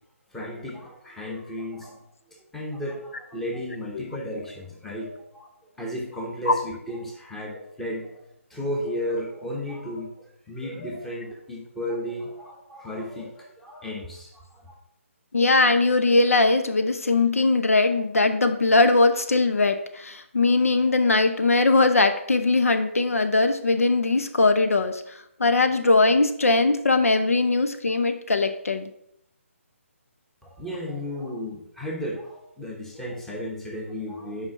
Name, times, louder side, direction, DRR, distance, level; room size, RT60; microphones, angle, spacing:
voice 1, 0.3-2.0 2.3-5.5 5.8-8.2 8.5-10.2 10.5-14.7 30.4-34.5, equal, 5° left, -2 dB, 1.1 m, -34 dB
voice 2, 15.3-28.9, left 3 dB, 85° left, 8 dB, 0.8 m, -20 dB
6.0 x 5.0 x 5.8 m, 0.74 s
hypercardioid pair, 155°, 8 cm